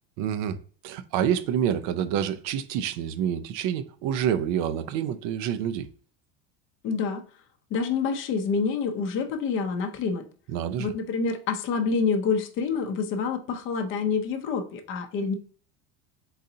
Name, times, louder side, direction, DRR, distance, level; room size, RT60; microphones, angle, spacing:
voice 1, 0.2-0.6 0.8-5.9 10.5-10.9, right 9 dB, 55° right, 0.5 m, -27 dB
voice 2, 6.8-7.2 7.7-10.2 10.8-15.3, left 5 dB, 35° left, 0.6 m, -27 dB
4.0 x 3.8 x 2.7 m
cardioid pair, 160°, 38 cm